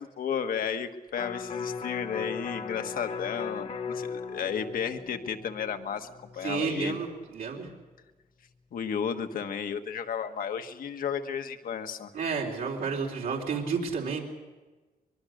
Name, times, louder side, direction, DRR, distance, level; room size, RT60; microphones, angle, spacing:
voice 1, 0.0-7.0 8.7-12.1, left 7 dB, 75° left, 7 dB, 1.4 m, -33 dB
Electric guitar, 1.1-7.4 7.8-7.9, left 5 dB, 45° left, 1.3 m, -38 dB
voice 2, 6.4-7.7 12.1-14.2, right 5 dB, 85° right, -2 dB, 3.8 m, -31 dB
23.5 x 22.5 x 6.5 m, 1.2 s
wide cardioid pair, 145°, 15 cm